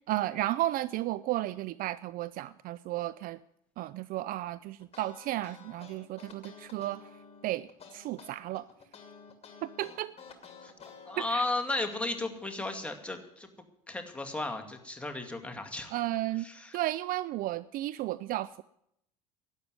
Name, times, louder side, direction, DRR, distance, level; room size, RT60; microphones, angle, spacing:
voice 1, 0.0-3.4 3.8-7.1 7.4-8.7 9.6-10.1 11.3-11.4 15.9-16.5 16.7-18.6, right 15 dB, 45° right, 18 dB, 0.4 m, -33 dB
sound 1, 4.8-11.6, left 5 dB, 30° left, 2.5 m, -51 dB
voice 2, 11.1-13.5 13.9-15.9 16.4-16.8, left 2 dB, 5° left, 3 dB, 2.1 m, -34 dB
12.0 x 9.1 x 9.5 m, 0.76 s
figure-of-eight pair, 70°, 21 cm